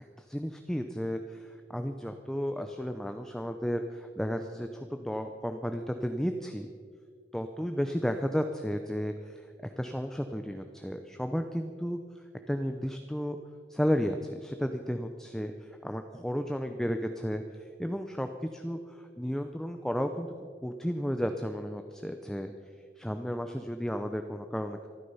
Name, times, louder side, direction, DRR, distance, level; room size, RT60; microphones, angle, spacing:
voice 1, 0.3-6.7 7.3-12.0 12.5-13.4 13.7-15.5 15.8-17.4 17.8-20.3 20.6-22.5 23.0-24.9, equal, 5° left, 6 dB, 0.6 m, -33 dB
25.5 x 9.9 x 5.5 m, 2.1 s
head